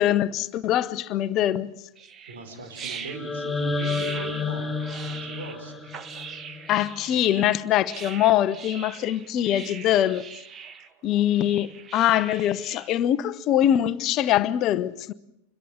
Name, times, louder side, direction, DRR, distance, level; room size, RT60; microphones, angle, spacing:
voice 1, 0.0-1.7 6.7-10.3 11.0-15.1, left 12 dB, 35° left, 0.9 m, -23 dB
sound 1, 2.0-12.9, right 7 dB, 25° right, 1.6 m, -41 dB
voice 2, 2.3-4.8 5.0-5.7, right 3 dB, 60° right, 5.0 m, -40 dB
sound 2, 3.1-7.1, left 3 dB, 5° left, 4.6 m, -31 dB
26.5 x 22.0 x 7.2 m
figure-of-eight pair, 90°, 0 cm